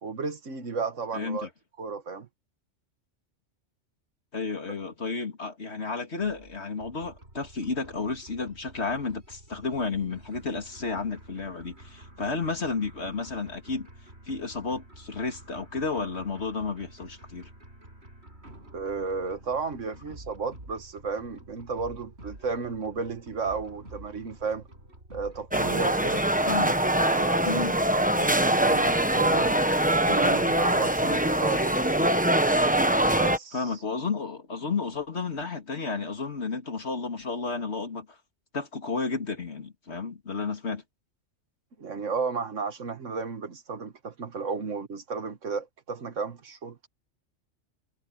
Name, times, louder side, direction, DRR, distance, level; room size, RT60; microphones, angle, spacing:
voice 1, 0.0-1.5 1.8-2.3 18.7-24.7 25.1-26.2 26.9-29.6 30.1-32.1 33.1-33.7 41.8-46.8, right 5 dB, 90° right, 1.9 m, -33 dB
voice 2, 1.1-1.5 4.3-13.9 14.3-17.5 26.5-26.7 27.4-27.7 33.5-38.2 38.5-40.8, left 4 dB, 60° left, 2.9 m, -32 dB
sound 1, 6.2-25.8, right 1 dB, 60° right, 6.4 m, -49 dB
sound 2, 25.5-33.4, right 1 dB, 5° right, 1.0 m, -23 dB
omnidirectional pair, 1.3 m